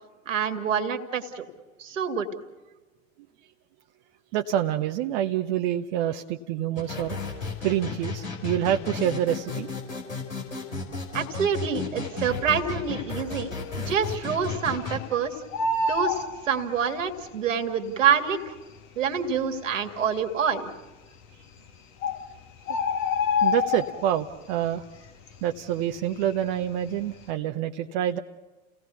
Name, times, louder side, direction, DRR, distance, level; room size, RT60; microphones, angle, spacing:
voice 1, 0.3-1.5 1.8-2.3 11.1-15.4 15.9-18.5 19.0-20.7, right 7 dB, 70° right, 6 dB, 2.2 m, -27 dB
voice 2, 4.3-7.2 7.6-9.7 23.4-24.8 25.4-28.2, right 11 dB, 45° right, 5 dB, 0.9 m, -27 dB
sound 1, 6.8-15.0, left 4 dB, 80° left, 5.1 m, -34 dB
Bird, 12.6-13.2 13.5-13.6 13.9-15.1 15.3-17.2 18.0-18.1 18.8-18.9 19.1-19.2 19.8-20.3 21.2-21.3 21.7-21.8 22.0-24.3 24.6-25.0 25.3-26.6 27.0-27.2, left 4 dB, 45° left, 2.4 m, -27 dB
30.0 x 17.5 x 6.9 m, 1.2 s
figure-of-eight pair, 85°, 39 cm